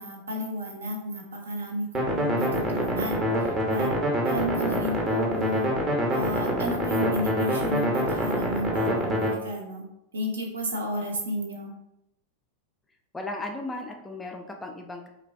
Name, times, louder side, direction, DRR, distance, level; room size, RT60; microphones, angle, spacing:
voice 1, 0.0-3.3 3.7-3.9 4.2-5.7 6.1-9.8 10.1-11.7, equal, 70° right, 1 dB, 0.5 m, -32 dB
sound 1, 1.9-9.3, equal, 20° right, 0.6 m, -26 dB
voice 2, 13.1-15.1, left 2 dB, 10° left, 3 dB, 0.3 m, -36 dB
3.1 x 2.1 x 2.4 m, 0.84 s
figure-of-eight pair, 90°, 0 cm